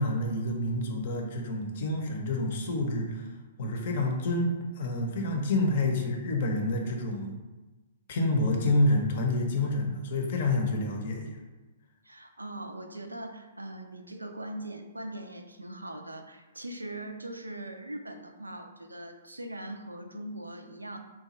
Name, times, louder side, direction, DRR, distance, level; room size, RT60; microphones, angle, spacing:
voice 1, 0.0-3.3 3.6-7.3 8.1-11.3, left 2 dB, 55° left, 2 dB, 0.6 m, -28 dB
voice 2, 12.0-21.0, right 1 dB, 90° right, 6 dB, 0.3 m, -41 dB
2.9 x 2.3 x 4.1 m, 1.2 s
figure-of-eight pair, 120°, 0 cm